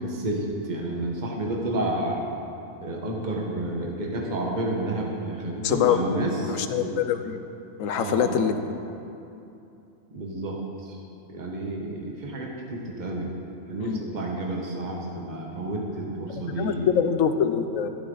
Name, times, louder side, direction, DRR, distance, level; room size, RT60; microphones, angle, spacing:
voice 1, 0.0-2.2 2.8-6.9 7.9-8.5 10.1-11.0 11.3-16.9, right 1 dB, 35° right, -1 dB, 1.4 m, -30 dB
voice 2, 5.6-6.0 6.5-7.4 7.8-8.8 13.8-14.0 16.5-17.9, left 8 dB, 85° left, 9 dB, 1.1 m, -24 dB
12.0 x 11.5 x 3.9 m, 2.7 s
omnidirectional pair, 1.3 m